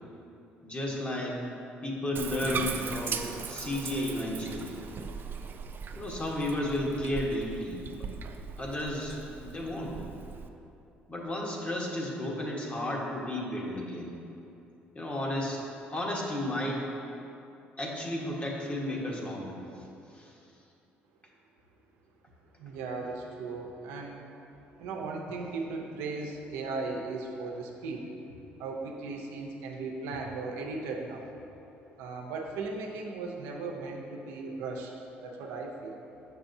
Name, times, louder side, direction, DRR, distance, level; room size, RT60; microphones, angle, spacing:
voice 1, 0.6-1.4 1.8-4.8 5.9-8.1 8.6-10.0 11.1-14.2 14.9-16.9 17.8-19.7 20.1-20.4, left 1 dB, 30° left, -2 dB, 1.3 m, -33 dB
Bathtub (filling or washing), 2.2-10.5, right 6 dB, 45° right, 0.4 m, -39 dB
voice 2, 22.6-24.2 24.8-28.1 28.6-31.3 32.0-34.9 35.2-36.0, right 3 dB, 85° right, 0 dB, 0.7 m, -37 dB
6.9 x 6.1 x 2.7 m, 2.8 s
supercardioid pair, 70°, 5 cm